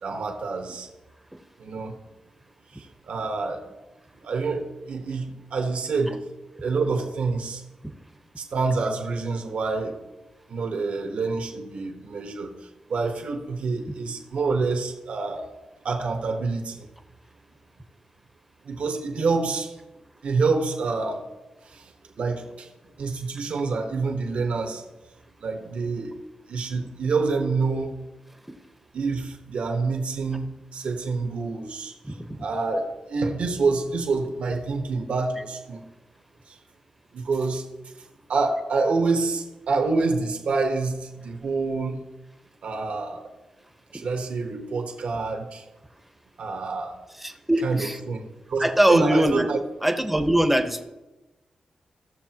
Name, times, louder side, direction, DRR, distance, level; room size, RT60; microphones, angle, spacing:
voice 1, 0.0-0.9 1.6-1.9 2.7-3.6 4.2-6.2 6.6-7.6 8.4-10.0 10.5-12.5 12.9-15.5 15.8-16.9 18.6-19.7 20.2-21.2 21.7-22.7 23.0-24.8 25.4-26.1 26.5-27.9 28.9-35.8 36.5-36.6 37.1-37.6 38.3-42.0 42.6-43.3 43.9-45.6 46.4-47.0 47.6-49.6, right 4 dB, 75° right, 3 dB, 1.4 m, -27 dB
voice 2, 32.0-32.4 43.9-44.0 47.2-48.0 48.6-49.5 49.8-50.8, right 1 dB, 5° right, 6 dB, 1.1 m, -22 dB
17.5 x 6.8 x 3.0 m, 1.1 s
cardioid pair, 75°, 2 cm